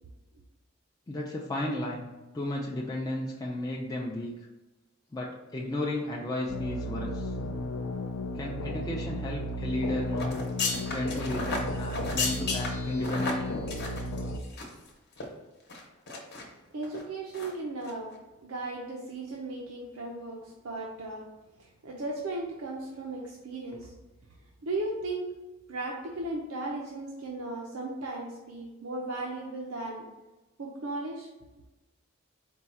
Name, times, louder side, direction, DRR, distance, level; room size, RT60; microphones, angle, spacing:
voice 1, 1.1-2.1 2.3-4.3 5.1-7.3 8.3-10.4 10.9-13.6, left 1 dB, 15° left, -3 dB, 0.4 m, -33 dB
sound 1, 6.5-14.4, left 1 dB, 80° left, 0.4 m, -34 dB
sound 2, 10.2-14.9 15.1-15.2 15.7-16.4 16.8-17.0 17.3-17.5 17.8-17.9, left 3 dB, 50° left, 0.9 m, -34 dB
voice 2, 16.7-18.1 18.4-21.3 21.6-23.9 24.6-25.3 25.7-30.1 30.6-31.3, right 2 dB, 80° right, -1 dB, 0.6 m, -36 dB
4.5 x 2.3 x 4.1 m, 1.1 s
head